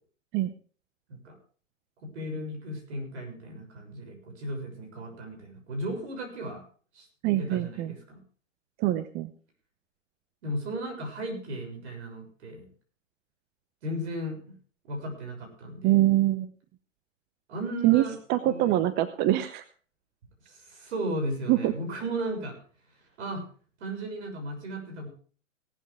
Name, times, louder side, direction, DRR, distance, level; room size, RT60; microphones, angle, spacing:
voice 1, 2.0-6.6 6.9-7.1 7.4-8.2 10.4-12.7 13.8-14.6 14.9-16.0 17.5-18.1 18.4-18.8 20.5-22.6 23.2-23.4 23.8-25.1, right 1 dB, 60° right, 4 dB, 6.8 m, -35 dB
voice 2, 7.2-7.9 8.8-9.3 15.8-16.5 17.8-18.0 18.3-19.6 21.5-21.7, right 15 dB, 25° right, 12 dB, 0.8 m, -24 dB
17.5 x 12.0 x 3.5 m, 0.42 s
hypercardioid pair, 115°, 38 cm